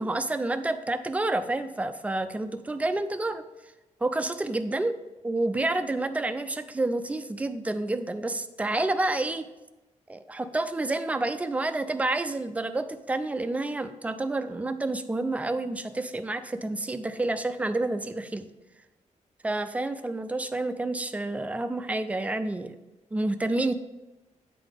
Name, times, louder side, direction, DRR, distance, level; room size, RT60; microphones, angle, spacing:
voice 1, 0.0-3.4 4.0-4.9 5.2-9.5 10.1-18.5 19.4-22.8 23.1-23.7, right 2 dB, 10° right, 9 dB, 0.3 m, -29 dB
9.0 x 4.0 x 3.4 m, 1.0 s
wide cardioid pair, 135°, 13 cm